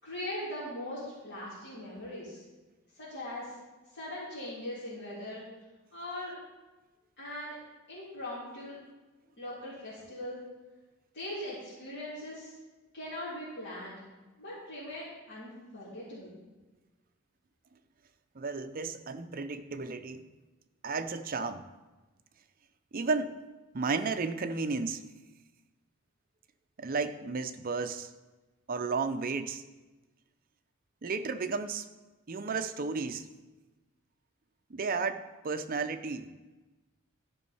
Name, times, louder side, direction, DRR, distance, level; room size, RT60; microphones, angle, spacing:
voice 1, 0.0-2.4 2.9-3.5 3.9-5.4 5.9-6.4 7.2-7.6 7.9-8.8 9.4-10.4 11.1-12.5 12.9-14.0 14.4-16.3, left 1 dB, 55° left, -11 dB, 3.2 m, -40 dB
voice 2, 18.4-20.3 20.8-21.6 22.9-23.4 23.7-25.0 26.8-28.1 28.7-29.6 31.0-31.8 32.3-33.3 34.7-36.3, right 4 dB, 40° right, 9 dB, 0.6 m, -33 dB
13.0 x 5.2 x 5.5 m, 1.2 s
head